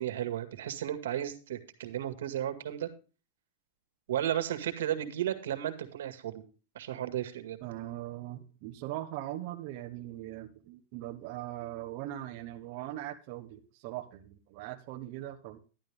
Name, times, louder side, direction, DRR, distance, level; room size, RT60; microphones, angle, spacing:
voice 1, 0.0-2.9 4.1-6.4 6.8-7.6, right 11 dB, 90° right, 9 dB, 2.0 m, -34 dB
voice 2, 7.6-15.6, right 14 dB, 35° right, 4 dB, 1.2 m, -40 dB
11.5 x 11.5 x 3.5 m, 0.34 s
supercardioid pair, 180°, 0 cm